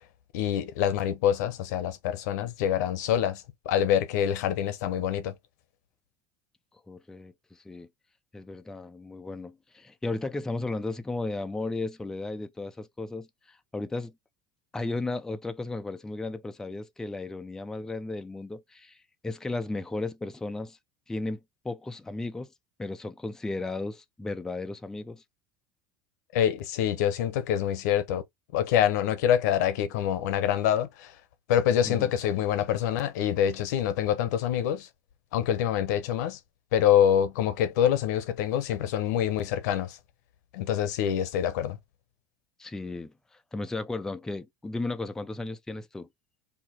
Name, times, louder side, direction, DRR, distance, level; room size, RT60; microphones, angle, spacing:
voice 1, 0.3-5.3 26.3-28.2 28.5-31.2 31.5-34.9 35.3-36.4 36.7-40.0 40.5-41.8, left 10 dB, 85° left, 0.9 m, -26 dB
voice 2, 6.9-7.9 8.3-14.1 14.7-19.0 19.2-20.8 21.1-21.4 21.6-22.5 22.8-25.2 31.8-32.1 42.6-46.1, left 2 dB, 5° left, 0.4 m, -35 dB
4.5 x 2.8 x 4.2 m
supercardioid pair, 150°, 9 cm